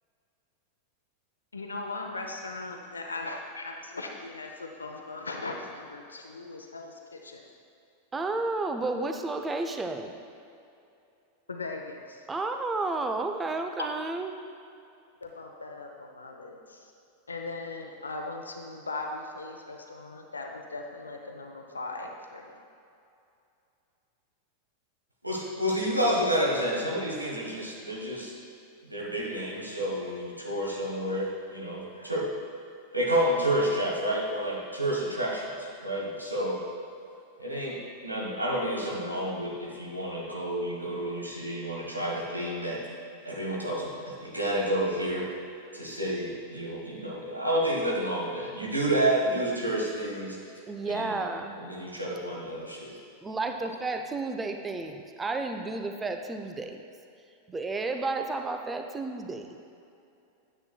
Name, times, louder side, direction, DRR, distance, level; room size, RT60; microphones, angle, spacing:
voice 1, 1.5-7.5 11.5-12.2 13.8-13.9 15.2-16.9 17.3-22.6 43.4-43.6, left 3 dB, 75° left, 2 dB, 0.7 m, -39 dB
voice 2, 8.1-10.2 12.3-14.3 50.7-51.6 53.2-56.8 57.5-59.6, right 3 dB, 15° right, 5 dB, 0.6 m, -32 dB
voice 3, 25.2-28.3 28.8-32.3 32.9-36.6 37.4-37.8 38.0-42.8 43.2-45.3 45.7-50.4 50.8-51.2 51.6-53.0, right 1 dB, 85° right, -3 dB, 1.4 m, -29 dB
9.6 x 8.8 x 2.3 m, 2.6 s
figure-of-eight pair, 90°, 0 cm